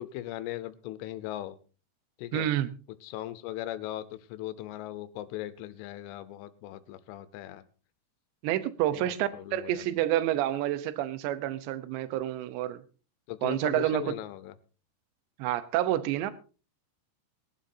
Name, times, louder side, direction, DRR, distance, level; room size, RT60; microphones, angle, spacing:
voice 1, 0.0-1.6 2.2-2.5 3.0-7.6 9.0-9.9 13.3-14.6, left 14 dB, 80° left, 3.3 m, -39 dB
voice 2, 2.3-2.7 8.4-12.8 13.4-14.2 15.4-16.3, right 13 dB, 75° right, 2.8 m, -28 dB
22.0 x 11.5 x 2.7 m
omnidirectional pair, 5.7 m